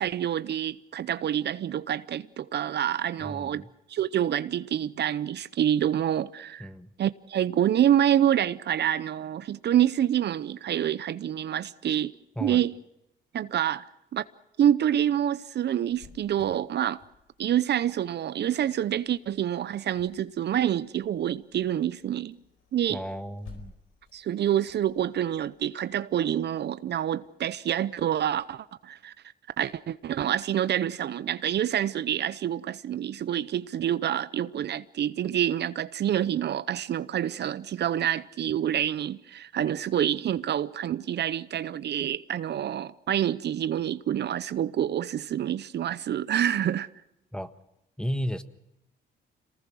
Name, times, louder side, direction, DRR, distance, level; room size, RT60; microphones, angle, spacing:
voice 1, 0.0-3.6 3.9-6.7 7.0-12.1 12.4-12.7 13.3-13.9 14.1-14.2 14.6-17.0 17.4-22.4 22.7-23.0 24.1-29.1 29.6-46.9, right 10 dB, 60° right, 0.7 m, -27 dB
voice 2, 3.2-3.7 6.6-6.9 12.4-12.6 22.9-23.7 47.3-47.5 48.0-48.4, equal, 5° left, 1.5 m, -33 dB
Cricket, 15.9-27.3, left 5 dB, 80° left, 4.6 m, -56 dB
27.0 x 20.0 x 6.3 m
cardioid pair, 90°, 20 cm